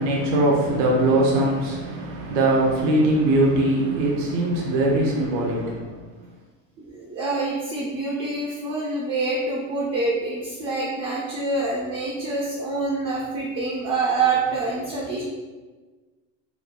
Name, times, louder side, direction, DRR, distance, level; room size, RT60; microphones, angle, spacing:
voice 1, 0.0-5.9, right 1 dB, 75° right, -2 dB, 0.7 m, -21 dB
voice 2, 6.8-15.2, right 3 dB, 30° right, -5 dB, 0.4 m, -26 dB
3.1 x 2.1 x 2.4 m, 1.3 s
cardioid pair, 165°, 37 cm